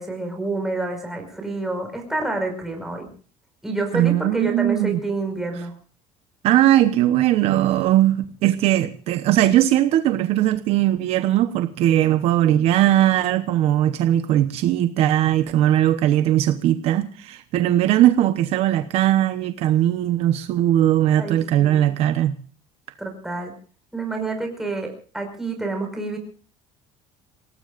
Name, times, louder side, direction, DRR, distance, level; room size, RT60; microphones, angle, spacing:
voice 1, 0.0-3.1 3.6-5.7 21.2-22.0 23.0-23.5 23.9-26.2, right 2 dB, 5° right, 5.4 m, -28 dB
voice 2, 3.9-5.0 6.4-22.3, right 12 dB, 55° right, 1.0 m, -19 dB
28.5 x 18.5 x 2.5 m
cardioid pair, 160°, 13 cm